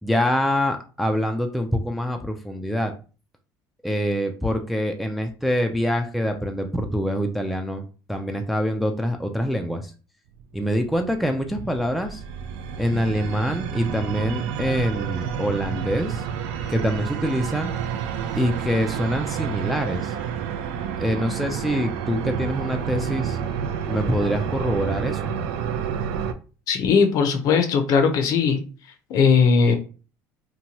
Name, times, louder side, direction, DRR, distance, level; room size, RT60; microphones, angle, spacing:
voice 1, 0.0-2.9 3.8-9.9 10.5-12.2 12.8-16.2 16.7-17.7 18.4-20.1 21.0-23.4 23.9-25.3, equal, ahead, 0.3 m, -25 dB
sound 1, 10.4-26.3, right 8 dB, 85° right, 0.3 m, -29 dB
voice 2, 26.7-28.6 29.1-29.8, left 5 dB, 55° left, 0.6 m, -18 dB
2.9 x 2.2 x 2.8 m
cardioid pair, 125°, 7 cm